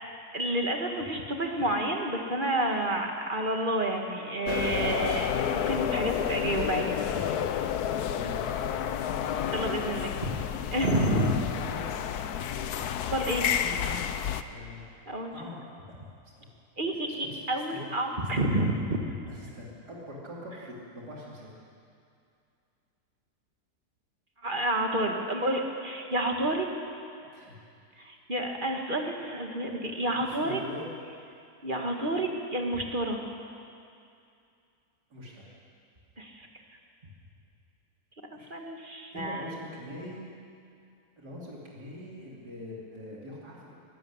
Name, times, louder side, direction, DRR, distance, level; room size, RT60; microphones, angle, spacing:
voice 1, 0.3-6.9 9.5-10.4 10.7-11.4 13.1-13.5 15.1-15.3 16.8-19.0 24.4-26.7 28.0-30.6 31.6-33.2 36.2-36.5 38.5-39.6, right 1 dB, 30° right, 2 dB, 2.0 m, -29 dB
sound 1, 4.5-14.4, left 9 dB, 75° left, 1.3 m, -30 dB
voice 2, 7.9-9.5 11.6-12.4 13.5-15.0 15.3-16.0 16.4-16.5 16.9-17.4 17.7-17.9 18.4-18.5 19.3-21.5 27.3-27.6 30.2-30.9 32.1-32.3 35.1-35.4 38.3-38.5 39.1-40.3 41.2-43.7, left 1 dB, 75° right, -5 dB, 3.8 m, -43 dB
22.5 x 12.5 x 9.7 m, 2.5 s
omnidirectional pair, 1.7 m